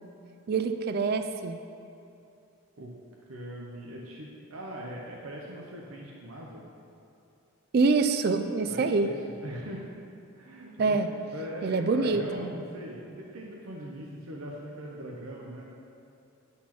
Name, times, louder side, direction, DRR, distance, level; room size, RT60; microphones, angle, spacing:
voice 1, 0.5-1.6 7.7-9.1 10.8-11.1 11.6-12.5, right 4 dB, 45° right, 8 dB, 0.3 m, -25 dB
voice 2, 3.3-6.6 8.7-9.9 10.4-15.6, equal, 75° right, -3 dB, 0.8 m, -41 dB
10.0 x 4.2 x 5.9 m, 2.7 s
head